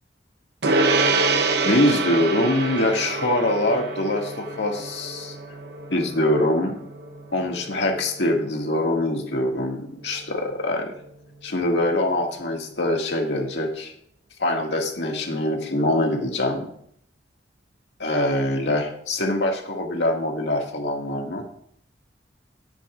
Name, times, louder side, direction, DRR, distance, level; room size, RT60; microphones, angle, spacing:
Gong, 0.6-10.3, right 3 dB, 65° right, 0.9 m, -27 dB
voice 1, 1.6-5.4 5.9-6.8 7.3-10.9 11.4-13.9 14.4-16.7 18.0-21.4, left 1 dB, 75° left, 1 dB, 1.9 m, -24 dB
13.0 x 10.0 x 2.4 m, 0.67 s
head